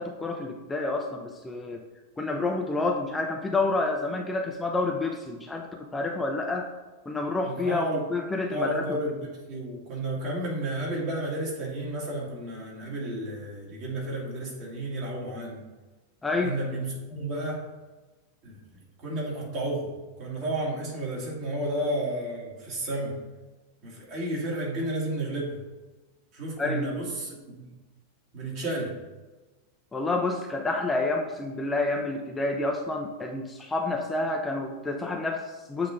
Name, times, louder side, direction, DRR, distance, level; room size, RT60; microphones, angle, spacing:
voice 1, 0.0-1.8 2.2-6.7 7.1-9.0 16.2-16.6 26.6-27.0 29.9-35.9, left 2 dB, 10° left, 2 dB, 0.6 m, -29 dB
voice 2, 7.4-8.0 8.5-15.6 16.4-17.7 18.4-18.6 19.0-19.9 20.2-23.2 23.8-25.6 26.3-27.7 28.3-29.0, right 1 dB, 40° right, -3 dB, 2.2 m, -32 dB
7.6 x 3.3 x 5.0 m, 1.2 s
figure-of-eight pair, 90°, 0 cm